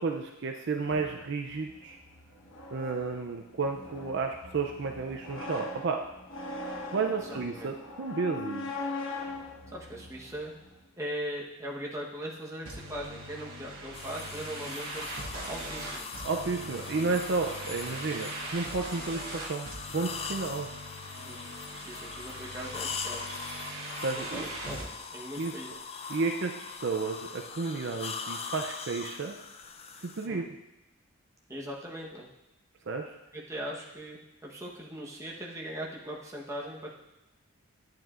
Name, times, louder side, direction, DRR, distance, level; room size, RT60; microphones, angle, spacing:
voice 1, 0.0-2.0 2.7-6.0 6.9-8.7 16.2-20.7 24.0-24.5 25.4-25.5 26.1-29.4 30.0-30.5 32.9-33.2, right 4 dB, 55° right, 3 dB, 0.5 m, -32 dB
sound 1, 0.8-10.8, left 2 dB, 60° left, 1.1 m, -41 dB
voice 2, 7.1-7.7 9.7-10.5 11.0-15.1 15.3-16.1 21.2-21.4 21.8-23.2 24.2-25.7 30.2-30.5 31.5-32.3 33.3-36.9, equal, 15° right, -3 dB, 1.1 m, -40 dB
sound 2, 12.7-24.9, right 1 dB, 70° right, 1.1 m, -41 dB
sound 3, 13.9-30.3, left 5 dB, 30° left, 0.4 m, -41 dB
10.5 x 9.2 x 2.5 m, 0.95 s
head